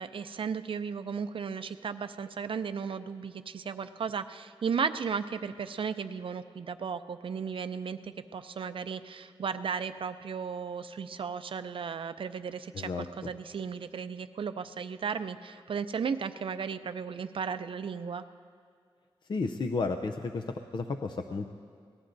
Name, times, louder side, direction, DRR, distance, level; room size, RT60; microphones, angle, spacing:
voice 1, 0.0-12.9 13.2-18.2, right 6 dB, 60° right, 10 dB, 0.5 m, -35 dB
voice 2, 12.7-13.3 19.3-21.5, left 3 dB, 50° left, 6 dB, 0.5 m, -33 dB
25.0 x 19.0 x 2.6 m, 2.1 s
wide cardioid pair, 125°, 10 cm